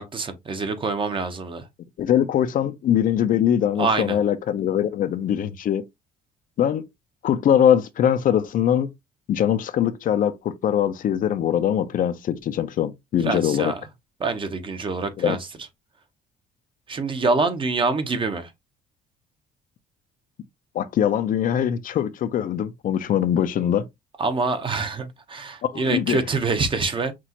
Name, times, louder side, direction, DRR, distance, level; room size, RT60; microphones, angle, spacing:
voice 1, 0.0-1.7 3.8-4.2 13.2-13.8 14.2-15.5 16.9-18.5 24.2-27.1, right 3 dB, 30° right, 0.9 m, -25 dB
voice 2, 2.0-5.8 6.6-6.8 7.2-8.9 9.3-13.7 15.2-15.4 20.7-23.8 25.7-26.2, left 10 dB, 55° left, 0.6 m, -22 dB
6.0 x 2.4 x 2.9 m
cardioid pair, 110°, 17 cm